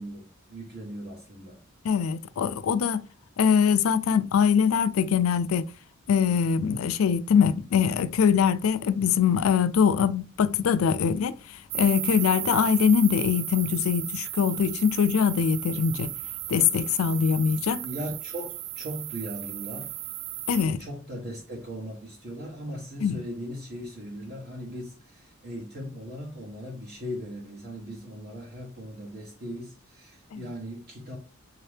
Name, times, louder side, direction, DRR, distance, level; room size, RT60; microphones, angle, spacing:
voice 1, 0.0-1.6 17.8-19.9 20.6-31.2, equal, 50° right, 1.0 m, -38 dB
voice 2, 1.8-3.0 3.4-5.7 6.1-16.1 16.5-17.8 20.5-20.8 23.0-23.2 30.3-30.5, left 7 dB, 85° left, 0.4 m, -23 dB
sound 1, 11.7-20.6, right 14 dB, 70° right, 0.3 m, -35 dB
3.6 x 2.8 x 3.3 m
head